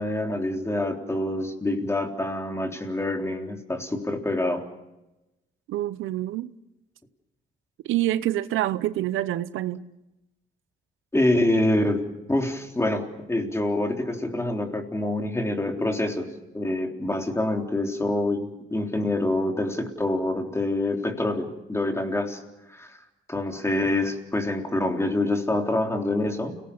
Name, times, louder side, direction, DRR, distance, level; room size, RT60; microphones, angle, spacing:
voice 1, 0.0-4.6 11.1-16.3 16.5-22.4 22.7-23.0 23.3-26.6, left 1 dB, 15° left, 3.7 m, -26 dB
voice 2, 5.7-6.5 7.8-9.8, right 14 dB, 85° right, 0.8 m, -26 dB
29.5 x 18.5 x 7.1 m
cardioid pair, 90°, 20 cm